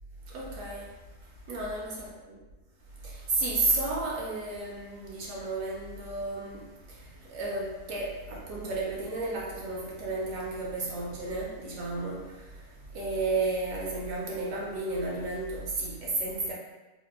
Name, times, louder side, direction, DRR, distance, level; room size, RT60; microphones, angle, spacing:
voice 1, 0.2-2.0 3.0-16.5, right 2 dB, 70° right, 1.0 m, -33 dB
3.5 x 2.2 x 2.3 m
omnidirectional pair, 1.6 m